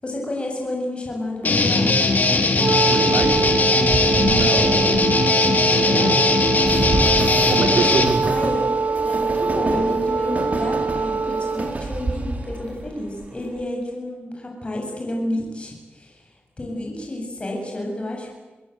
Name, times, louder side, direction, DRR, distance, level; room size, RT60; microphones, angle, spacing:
voice 1, 0.0-2.0 4.2-4.6 5.8-6.1 8.2-8.6 8.9-16.3 16.6-18.3, left 1 dB, 30° left, 0 dB, 7.7 m, -30 dB
Guitar, 1.4-8.1, left 3 dB, 50° left, 3.5 m, -19 dB
Wind instrument woodwind instrument, 2.5-11.8, right 4 dB, 60° right, 1.4 m, -23 dB
voice 2, 2.9-3.7 4.1-6.1 7.5-8.3, right 4 dB, 85° right, 6 dB, 3.3 m, -26 dB
Train, 3.2-13.6, right 2 dB, 40° right, 3.9 m, -30 dB
29.5 x 21.5 x 8.1 m, 1.2 s
wide cardioid pair, 95°, 4 cm